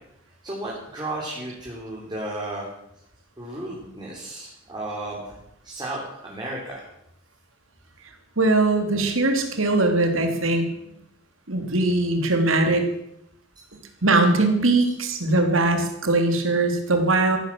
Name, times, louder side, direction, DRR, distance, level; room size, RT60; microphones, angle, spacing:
voice 1, 0.4-2.7 3.4-5.4 5.6-6.9 14.8-14.9, right 1 dB, 20° right, -4 dB, 3.6 m, -33 dB
voice 2, 8.4-10.6 11.5-12.9 14.0-17.4, right 2 dB, 75° right, 5 dB, 2.9 m, -21 dB
14.5 x 11.5 x 7.6 m, 0.80 s
head